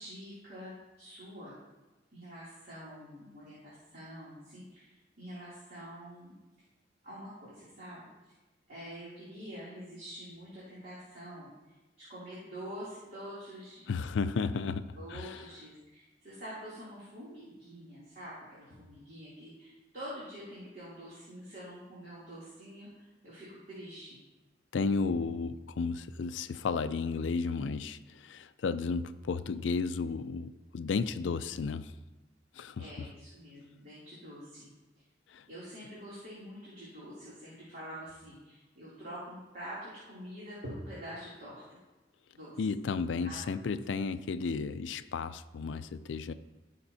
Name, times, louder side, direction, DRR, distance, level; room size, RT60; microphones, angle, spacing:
voice 1, 0.0-1.5 2.1-6.3 7.0-8.3 8.7-13.9 14.9-24.2 32.8-34.7 35.5-41.6 42.3-42.6 43.2-43.4, equal, 55° right, -9 dB, 2.8 m, -46 dB
voice 2, 13.9-15.5 24.7-31.9 32.5-33.1 35.3-35.5 42.6-46.3, left 4 dB, 80° left, 11 dB, 0.4 m, -33 dB
15.5 x 5.8 x 2.7 m, 1.1 s
head